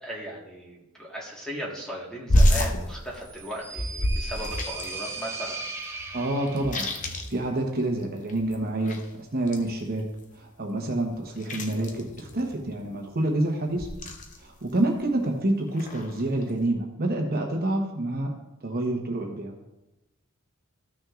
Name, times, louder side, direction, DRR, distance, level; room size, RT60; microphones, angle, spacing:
voice 1, 0.0-5.6, equal, 5° left, -4 dB, 1.6 m, -37 dB
sound 1, 2.3-5.1 5.3-5.4 5.6-8.0 8.3-10.3 10.9-13.0 13.7-14.6 14.9-15.4 15.7-16.6, left 1 dB, 35° left, 0.7 m, -28 dB
sound 2, 3.2-7.0, right 3 dB, 10° right, 0.6 m, -37 dB
voice 2, 6.1-9.0 9.3-10.1 10.3-13.9 14.4-18.3 18.6-19.5, right 1 dB, 45° right, 1 dB, 1.0 m, -28 dB
14.0 x 6.1 x 2.5 m, 0.97 s
head